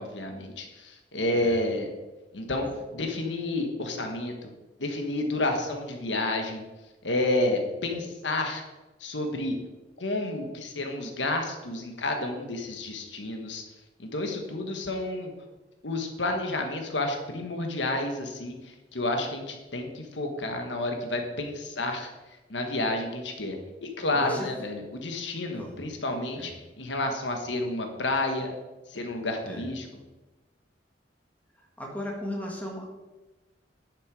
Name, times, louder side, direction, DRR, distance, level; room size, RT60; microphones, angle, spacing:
voice 1, 0.0-1.9 2.3-4.5 4.8-6.6 7.0-8.6 9.0-9.6 10.0-13.6 14.0-15.3 15.8-22.1 22.5-26.5 26.8-28.5 28.9-29.9, left 2 dB, 85° left, 4 dB, 1.5 m, -30 dB
voice 2, 24.1-24.5 25.5-25.8 26.4-26.5 29.4-29.7 31.8-32.8, left 1 dB, 10° left, 0 dB, 1.8 m, -36 dB
10.5 x 6.8 x 4.9 m, 1.1 s
head